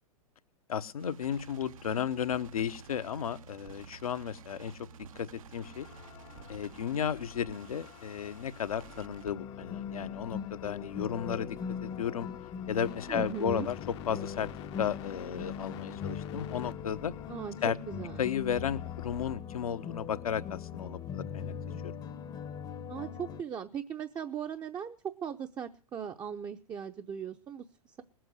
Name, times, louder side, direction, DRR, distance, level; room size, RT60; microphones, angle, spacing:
voice 1, 0.7-4.9 5.1-5.9 6.5-12.3 12.7-13.8 14.1-14.5 14.8-17.1 17.6-17.8 18.2-21.5 21.8-21.9, left 8 dB, 70° left, 10 dB, 1.0 m, -34 dB
sound 1, 1.0-9.3, right 7 dB, 65° right, 1.0 m, -51 dB
sound 2, 5.6-19.4, left 12 dB, 50° left, 0.9 m, -50 dB
sound 3, 9.2-23.4, left 7 dB, 20° left, 0.9 m, -40 dB
voice 2, 13.1-13.7 17.3-18.3 22.9-28.0, right 8 dB, 20° right, 5 dB, 0.8 m, -39 dB
20.0 x 7.9 x 6.3 m, 0.37 s
figure-of-eight pair, 105°, 19 cm